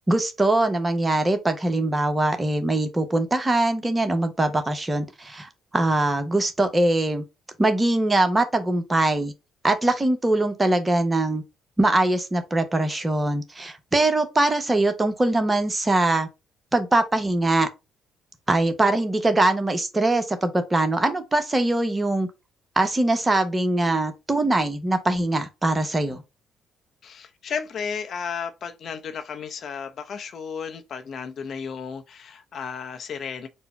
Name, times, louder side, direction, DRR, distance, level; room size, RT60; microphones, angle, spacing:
voice 1, 0.1-7.2 7.6-9.3 9.6-11.4 11.8-16.3 16.7-17.7 18.5-22.3 22.8-26.2, right 2 dB, 20° right, 1.0 m, -22 dB
voice 2, 27.0-33.5, left 6 dB, 55° left, 0.8 m, -33 dB
4.2 x 2.3 x 4.4 m
hypercardioid pair, 55°, 0 cm